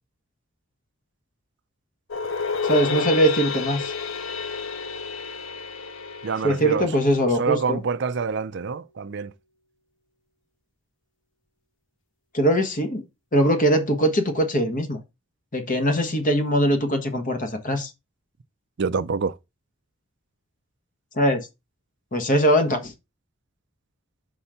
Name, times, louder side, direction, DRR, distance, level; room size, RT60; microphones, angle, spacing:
sound 1, 2.1-7.3, left 5 dB, 70° left, 0.7 m, -30 dB
voice 1, 2.6-3.9 6.4-7.8 12.3-13.0 13.3-15.0 15.5-17.9 21.1-21.5 22.1-22.9, equal, 40° left, 1.3 m, -21 dB
voice 2, 6.2-6.9 7.4-9.3 18.8-19.3, right 5 dB, 60° right, 0.5 m, -26 dB
5.6 x 3.8 x 5.7 m
head